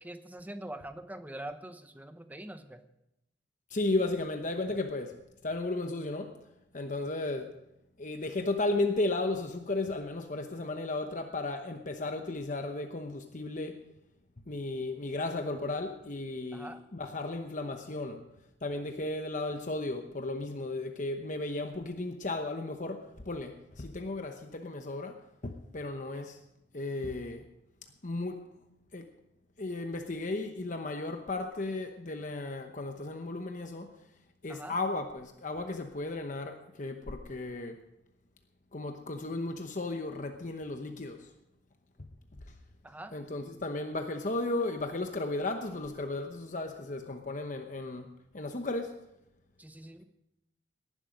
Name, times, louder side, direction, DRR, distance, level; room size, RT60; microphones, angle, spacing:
voice 1, 0.0-2.8 16.5-16.9 34.5-34.7 42.8-43.2 49.6-50.0, right 1 dB, 10° right, 9 dB, 0.9 m, -44 dB
voice 2, 3.7-6.4 6.7-7.6 8.0-13.8 14.5-18.2 18.6-26.4 26.7-27.4 28.0-28.4 28.9-29.1 29.6-33.9 34.4-37.8 38.7-41.3 42.0-42.1 42.5-42.6 43.1-49.0, left 2 dB, 45° left, 5 dB, 0.9 m, -35 dB
18.5 x 11.5 x 5.2 m, 0.86 s
head